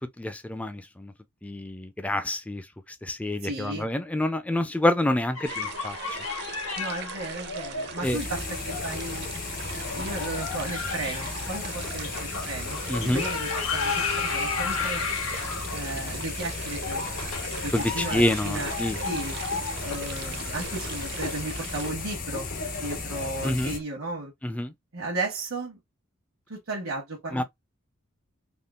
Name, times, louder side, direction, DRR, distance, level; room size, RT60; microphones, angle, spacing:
voice 1, 0.2-1.1 1.4-2.6 3.0-6.0 8.0-8.2 12.9-13.2 17.7-19.0 23.4-23.7 24.4-24.7 27.3-27.4, left 1 dB, 5° left, 0.3 m, -27 dB
voice 2, 3.4-3.9 6.8-9.3 9.7-15.0 15.7-18.7 19.0-19.4 19.8-22.5 22.8-24.3 24.9-25.8 26.5-27.4, right 2 dB, 75° right, 1.0 m, -35 dB
sound 1, 5.3-23.8, left 4 dB, 90° left, 1.4 m, -34 dB
sound 2, 5.4-21.9, right 6 dB, 50° right, 0.5 m, -40 dB
sound 3, 8.0-23.8, left 4 dB, 40° left, 0.6 m, -36 dB
3.6 x 2.3 x 2.3 m
head